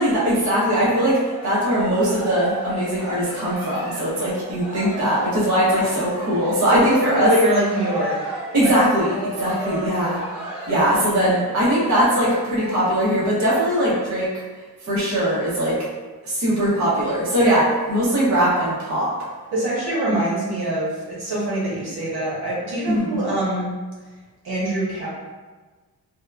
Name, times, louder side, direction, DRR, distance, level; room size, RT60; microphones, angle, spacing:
voice 1, 0.0-7.3 8.5-10.2 10.7-14.3 14.8-15.9 16.2-19.1 22.9-23.2, equal, 45° right, -8 dB, 0.8 m, -20 dB
Cheering, 1.0-12.7, right 1 dB, 5° right, 1.0 m, -34 dB
voice 2, 6.7-8.2 8.6-8.7 19.5-23.7 24.4-25.1, right 1 dB, 75° right, -7 dB, 1.0 m, -23 dB
2.8 x 2.2 x 2.3 m, 1.3 s
wide cardioid pair, 135°, 39 cm